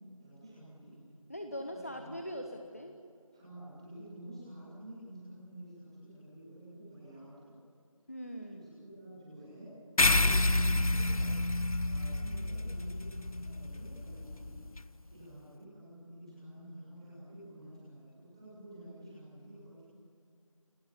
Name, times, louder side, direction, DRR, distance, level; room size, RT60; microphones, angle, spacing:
voice 1, 0.2-1.0 1.5-2.1 3.3-7.5 8.4-9.7 10.1-11.3 11.8-14.6 15.0-19.8, right 1 dB, 10° right, -8 dB, 6.8 m, -50 dB
voice 2, 1.3-2.9 8.1-8.7, equal, 25° left, 4 dB, 1.2 m, -41 dB
sound 1, 10.0-14.8, left 2 dB, 85° left, 1.0 m, -29 dB
30.0 x 25.0 x 7.4 m, 2.5 s
figure-of-eight pair, 175°, 18 cm